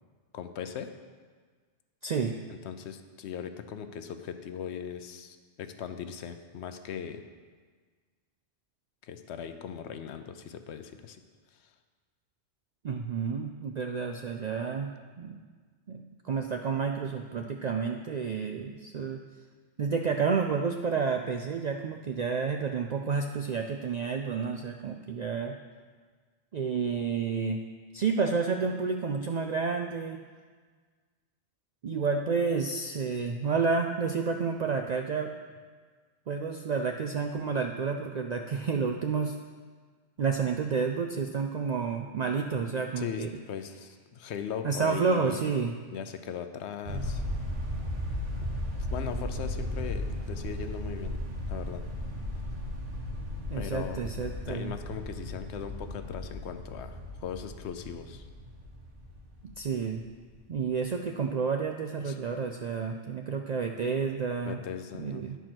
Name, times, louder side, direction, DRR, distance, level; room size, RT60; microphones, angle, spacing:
voice 1, 0.3-0.9 2.5-7.2 9.0-11.2 43.0-45.4 45.9-47.2 48.9-51.8 53.5-54.1 54.5-58.3 62.0-62.2 64.4-65.2, left 7 dB, 70° left, 8 dB, 0.9 m, -39 dB
voice 2, 2.0-2.4 12.8-15.4 15.9-19.2 19.8-25.6 26.5-27.6 27.9-30.2 31.8-35.3 36.3-39.4 40.2-43.3 44.6-45.7 53.5-54.8 59.4-60.0 60.5-64.6 64.9-65.4, right 5 dB, 65° right, 4 dB, 0.4 m, -30 dB
sound 1, 46.8-60.1, left 1 dB, 85° right, 1.6 m, -36 dB
10.0 x 4.7 x 6.0 m, 1.5 s
omnidirectional pair, 1.2 m